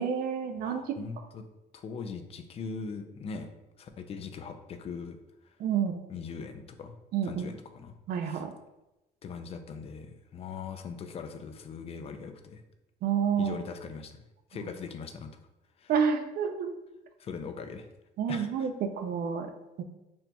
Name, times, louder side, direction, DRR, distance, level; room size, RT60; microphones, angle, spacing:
voice 1, 0.0-1.0 5.6-6.0 7.1-7.5 8.1-8.5 13.0-13.6 14.5-14.7 15.9-16.7 18.2-19.5 19.8-19.9, right 7 dB, 65° right, 6 dB, 0.4 m, -29 dB
voice 2, 0.6-1.4 1.7-3.5 3.8-5.2 6.1-7.0 7.2-7.9 8.2-8.4 9.2-12.6 13.4-14.2 14.5-15.3 15.8-15.9 17.2-17.9 18.3-18.7, left 5 dB, 35° left, 8 dB, 0.3 m, -40 dB
4.2 x 2.7 x 2.2 m, 0.96 s
cardioid pair, 110°, 17 cm